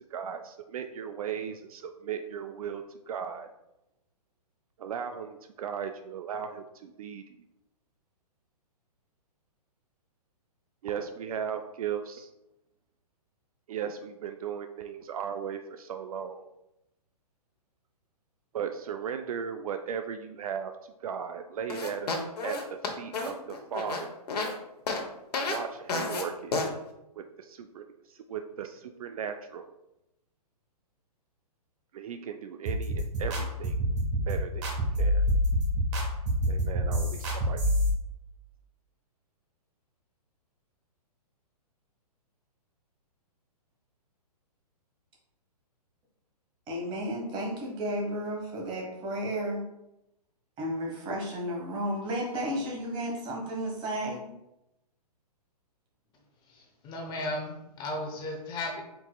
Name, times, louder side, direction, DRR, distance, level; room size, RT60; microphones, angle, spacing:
voice 1, 0.1-3.5 4.8-7.4 10.8-12.3 13.7-16.4 18.5-22.1 22.4-24.1 25.4-26.6 27.2-29.7 31.9-33.7 34.3-35.2 36.5-37.6, right 7 dB, 60° right, 7 dB, 0.4 m, -37 dB
sound 1, 21.7-24.5 24.9-25.0 25.3-25.6 25.9-26.2 26.5-26.7, left 3 dB, 75° left, 1.0 m, -31 dB
sound 2, 32.7-37.9, equal, 45° right, 1.5 m, -27 dB
voice 2, 46.7-49.6 50.6-54.2, equal, 25° right, -1 dB, 1.3 m, -33 dB
voice 3, 56.5-58.8, left 1 dB, 20° left, 1 dB, 0.7 m, -35 dB
4.5 x 4.0 x 2.3 m, 0.90 s
hypercardioid pair, 130°, 21 cm